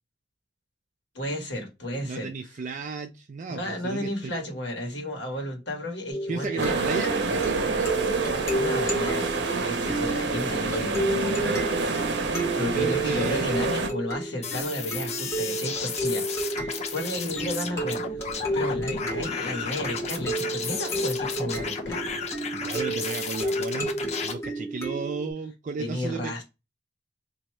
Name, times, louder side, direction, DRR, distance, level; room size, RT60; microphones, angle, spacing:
voice 1, 1.1-2.3 3.5-6.8 8.5-12.0 12.5-18.2 18.5-22.6 25.8-26.4, left 1 dB, 75° left, 1.4 m, -33 dB
voice 2, 2.0-4.1 6.3-8.4 12.5-13.7 19.0-19.3 22.5-24.0 24.2-26.4, right 4 dB, 45° right, 0.4 m, -34 dB
sound 1, 6.1-25.3, right 1 dB, 15° left, 1.2 m, -32 dB
sound 2, 6.6-13.9, right 3 dB, 70° right, 0.7 m, -27 dB
sound 3, 14.4-24.3, left 5 dB, 40° left, 0.7 m, -33 dB
3.0 x 2.7 x 4.3 m
head